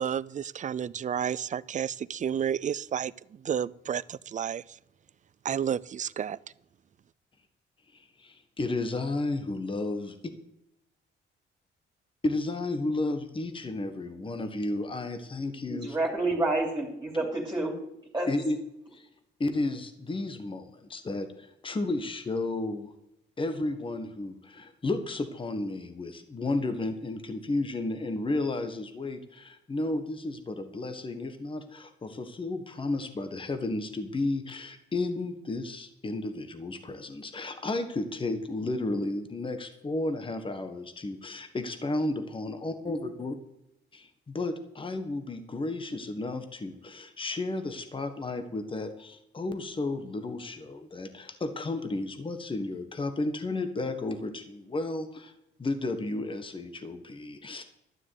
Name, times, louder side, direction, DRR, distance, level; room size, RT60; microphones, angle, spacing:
voice 1, 0.0-3.1 3.4-4.8 5.4-6.4, right 8 dB, 40° right, 20 dB, 0.4 m, -31 dB
voice 2, 7.9-10.2 12.2-16.0 18.3-18.6 18.9-19.1 19.4-22.9 23.4-43.3 43.9-55.3 55.6-57.6, left 2 dB, 25° left, 7 dB, 1.4 m, -33 dB
voice 3, 15.7-17.8 18.1-18.3, right 2 dB, 15° right, -1 dB, 3.2 m, -29 dB
12.5 x 7.3 x 8.0 m, 0.82 s
cardioid pair, 90°, 20 cm